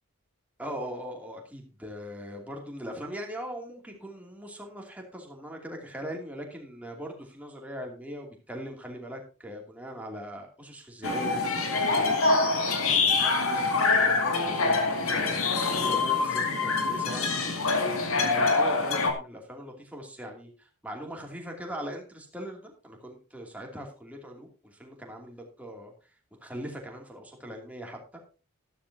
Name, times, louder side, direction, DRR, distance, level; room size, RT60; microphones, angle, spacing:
voice 1, 0.6-12.6 12.9-17.4 18.2-25.9 26.4-28.2, equal, 5° right, 1 dB, 2.6 m, -40 dB
sound 1, 11.0-19.1, left 3 dB, 70° left, 2.3 m, -25 dB
13.0 x 12.5 x 2.8 m, 0.33 s
head